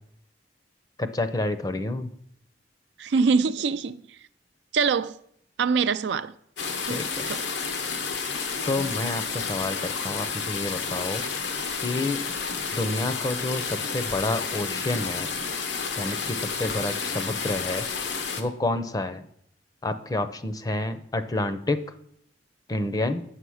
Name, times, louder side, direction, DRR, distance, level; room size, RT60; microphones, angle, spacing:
voice 1, 1.0-2.1 6.9-7.3 8.7-11.2 11.7-12.2 12.7-15.3 16.0-17.9 18.4-19.3 19.8-21.8 22.7-23.2, left 2 dB, 20° left, 0.6 m, -29 dB
voice 2, 3.0-4.0 4.7-5.2 5.6-6.3 6.9-7.4, right 5 dB, 75° right, 0.4 m, -24 dB
sound 1, 6.6-18.4, left 5 dB, 85° left, 1.0 m, -31 dB
7.6 x 5.8 x 6.3 m
head